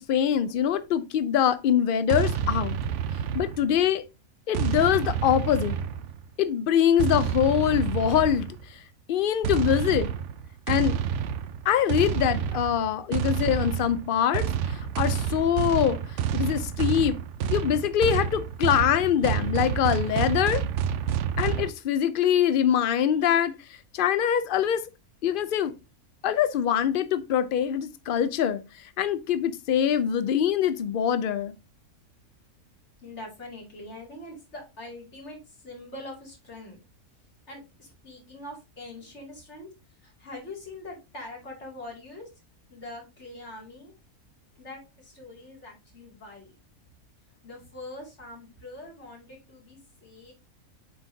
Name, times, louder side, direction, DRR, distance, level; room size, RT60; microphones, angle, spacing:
voice 1, 0.0-2.8 3.3-4.0 4.5-5.8 6.4-8.5 9.1-10.1 10.7-11.0 11.7-16.0 16.3-17.2 17.5-20.6 21.4-23.5 23.9-24.8 25.2-25.7 26.2-28.6 29.0-31.5, left 9 dB, 85° left, 0.4 m, -24 dB
sound 1, 2.1-3.9 4.5-6.3 7.0-8.6 9.4-21.7, right 8 dB, 65° right, 0.8 m, -29 dB
voice 2, 33.0-36.8 37.5-39.7 40.0-42.3 42.7-43.9 44.5-46.5 47.4-50.3, left 2 dB, 50° left, 2.8 m, -43 dB
7.5 x 4.7 x 2.7 m
omnidirectional pair, 1.5 m